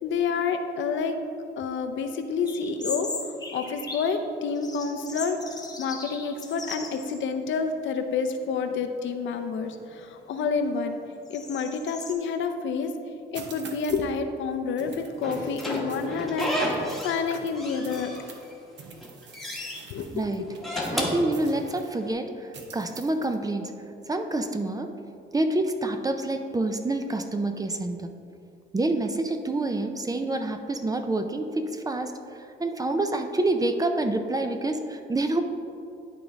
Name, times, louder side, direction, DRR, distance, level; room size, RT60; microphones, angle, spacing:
voice 1, 0.0-1.2 1.6-3.1 3.5-5.4 5.8-11.0 11.3-12.9 13.3-18.1 19.9-20.5, left 5 dB, 75° left, 6 dB, 0.6 m, -29 dB
sound 1, 2.5-4.2 4.6-7.3 7.6-7.7 8.5-8.8 9.3-12.1, left 3 dB, 20° left, 1.0 m, -39 dB
sound 2, 13.3-14.2 14.8-18.5 18.8-21.9 22.5-23.4, right 5 dB, 65° right, 0.9 m, -47 dB
Slam / Squeak, 15.2-17.3 17.6-18.5 18.9-19.8 20.5-22.0, left 1 dB, ahead, 1.2 m, -31 dB
voice 2, 20.1-20.5 20.9-23.7 24.1-24.9 25.3-28.1 28.7-32.1 32.6-35.4, right 2 dB, 20° right, 6 dB, 0.5 m, -27 dB
11.5 x 3.8 x 3.4 m, 2.6 s
cardioid pair, 90°, 20 cm